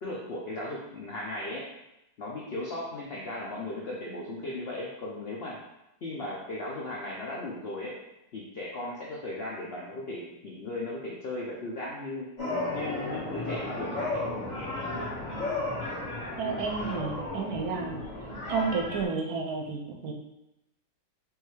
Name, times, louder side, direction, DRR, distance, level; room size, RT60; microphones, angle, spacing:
voice 1, 0.0-1.7 2.2-5.6 6.0-8.0 8.3-12.3 12.7-14.2, left 2 dB, 70° left, -3 dB, 0.5 m, -36 dB
sound 1, 12.4-19.0, left 2 dB, 30° left, 1.2 m, -34 dB
voice 2, 16.4-18.0 18.5-20.1, right 4 dB, 70° right, 2 dB, 1.0 m, -31 dB
4.6 x 2.7 x 3.1 m, 0.89 s
omnidirectional pair, 1.8 m